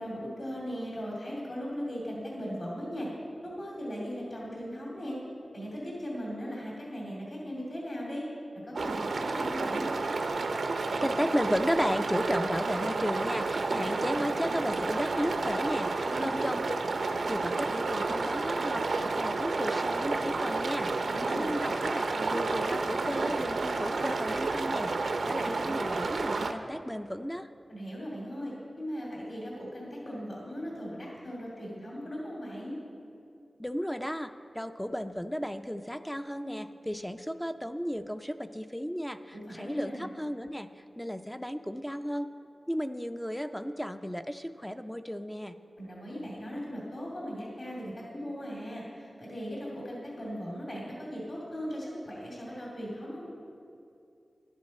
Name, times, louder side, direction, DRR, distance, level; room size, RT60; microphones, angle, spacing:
voice 1, 0.0-3.1 3.4-5.2 5.5-8.3 8.7-9.9 16.0-16.5 21.0-21.6 27.7-32.8 39.3-40.1 45.8-53.3, equal, 50° left, -4 dB, 2.5 m, -38 dB
sound 1, 8.7-26.5, right 3 dB, 85° right, 0.6 m, -30 dB
voice 2, 10.7-16.8 17.2-27.5 33.6-42.3 42.7-45.5, equal, 5° left, 8 dB, 0.4 m, -34 dB
11.5 x 11.0 x 4.2 m, 2.6 s
wide cardioid pair, 85°, 0 cm